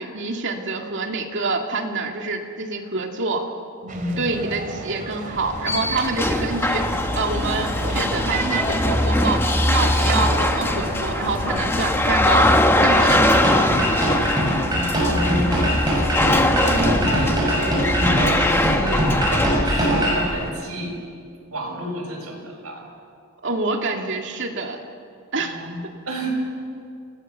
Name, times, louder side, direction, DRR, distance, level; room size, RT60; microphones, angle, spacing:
voice 1, 0.0-3.4 4.2-6.9 7.1-9.4 9.7-12.5 12.8-13.4 13.8-14.0 23.4-24.8 25.3-25.6, right 3 dB, 55° right, 2 dB, 2.4 m, -26 dB
voice 2, 3.8-4.2 14.7-15.9 16.3-21.0 21.5-22.9 25.3-26.4, equal, 80° right, -1 dB, 6.7 m, -29 dB
sound 1, 3.9-11.9, right 2 dB, 40° right, 3.1 m, -32 dB
sound 2, 5.3-20.5, left 1 dB, 10° left, 1.2 m, -21 dB
sound 3, 12.9-20.2, equal, 20° right, 6.3 m, -23 dB
28.5 x 18.5 x 7.1 m, 2.3 s
head